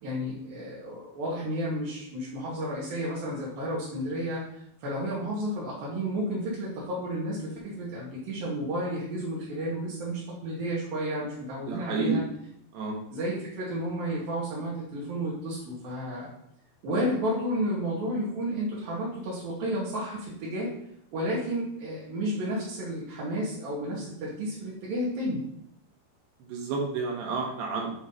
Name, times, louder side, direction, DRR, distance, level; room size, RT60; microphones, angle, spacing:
voice 1, 0.0-12.2 13.1-16.3 16.8-20.7 21.1-25.4, equal, 70° right, -7 dB, 3.4 m, -32 dB
voice 2, 11.7-12.2 12.7-13.0 26.5-27.9, right 4 dB, 90° right, 0 dB, 3.4 m, -30 dB
8.1 x 3.2 x 5.5 m, 0.74 s
omnidirectional pair, 4.5 m